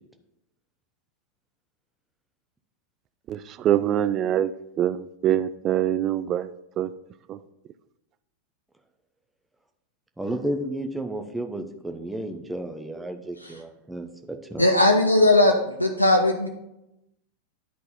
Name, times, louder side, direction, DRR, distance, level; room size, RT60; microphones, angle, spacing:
voice 1, 3.3-4.5 4.8-6.5 6.8-6.9 7.3-7.4, right 11 dB, 30° right, 14 dB, 0.4 m, -24 dB
voice 2, 10.2-14.6, right 1 dB, 5° right, 5 dB, 0.8 m, -32 dB
voice 3, 14.6-16.5, left 2 dB, 85° left, 4 dB, 0.5 m, -19 dB
11.0 x 4.0 x 4.2 m, 0.88 s
figure-of-eight pair, 90°, 0 cm